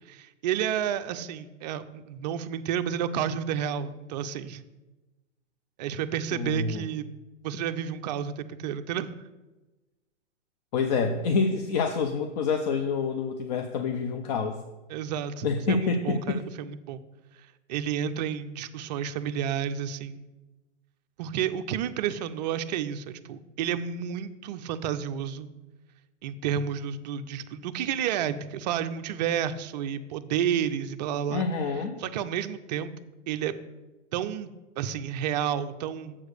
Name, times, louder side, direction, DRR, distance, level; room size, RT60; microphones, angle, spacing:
voice 1, 0.1-4.6 5.8-7.1 7.4-9.2 14.9-17.0 17.7-20.2 21.2-25.5 26.2-31.5 32.0-32.9 33.3-33.5 34.1-34.5 34.8-36.3, right 9 dB, 35° right, 10 dB, 0.5 m, -31 dB
voice 2, 6.3-6.8 10.7-14.6 15.4-16.4 31.3-32.0, left 4 dB, 35° left, 7 dB, 0.5 m, -27 dB
7.2 x 4.7 x 6.6 m, 1.1 s
hypercardioid pair, 120°, 36 cm